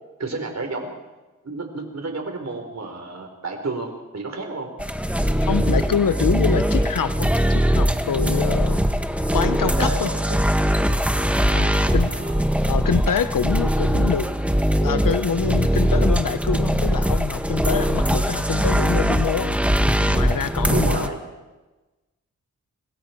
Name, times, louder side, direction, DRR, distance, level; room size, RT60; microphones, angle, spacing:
voice 1, 0.2-1.0 1.4-4.7 9.6-10.4 11.5-12.5 20.7-21.2, right 3 dB, 55° right, 4 dB, 4.5 m, -31 dB
sound 1, 4.8-21.1, equal, 5° right, 1.5 m, -21 dB
voice 2, 5.5-8.8 9.3-10.1 11.5-12.1 12.7-14.3 14.8-19.6 20.0-21.1, left 7 dB, 80° left, 13 dB, 1.0 m, -25 dB
26.5 x 21.0 x 4.7 m, 1.1 s
wide cardioid pair, 70°, 32 cm